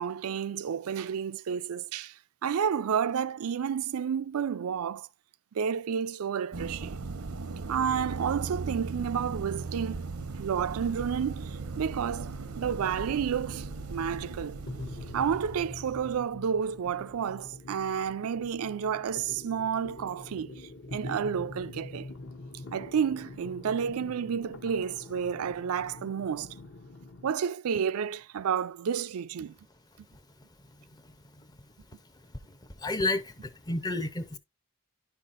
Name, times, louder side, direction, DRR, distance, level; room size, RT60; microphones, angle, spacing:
voice 1, 0.0-2.1 2.4-5.1 5.5-7.0 7.7-10.1 10.4-14.6 15.1-22.1 22.7-26.5 27.2-29.6, right 7 dB, 75° right, 0.4 m, -31 dB
sound 1, 6.5-16.2, right 3 dB, 90° right, 0.8 m, -38 dB
sound 2, 10.8-27.3, left 2 dB, 50° left, 0.9 m, -46 dB
voice 2, 30.6-31.5 32.8-34.4, left 2 dB, 20° left, 0.6 m, -32 dB
10.5 x 5.7 x 2.5 m
head